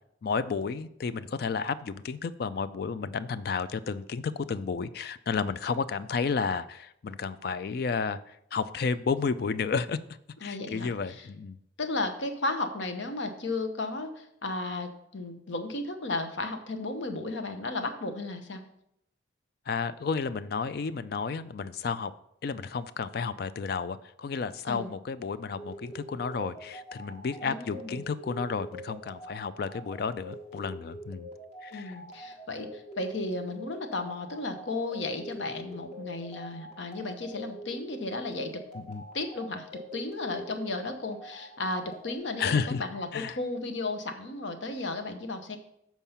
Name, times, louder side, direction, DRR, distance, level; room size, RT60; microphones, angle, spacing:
voice 1, 0.2-10.0 10.4-11.6 19.7-22.1 22.4-31.3 31.6-32.0 38.7-39.0 42.4-42.8 43.1-43.4, left 5 dB, 50° left, 14 dB, 0.3 m, -32 dB
voice 2, 10.4-11.3 11.8-18.6 24.6-24.9 27.4-28.0 31.7-38.6 39.1-45.6, left 2 dB, 70° left, 7 dB, 0.9 m, -34 dB
sound 1, 25.6-42.2, equal, 35° left, 1.3 m, -44 dB
7.3 x 4.6 x 5.5 m, 0.76 s
head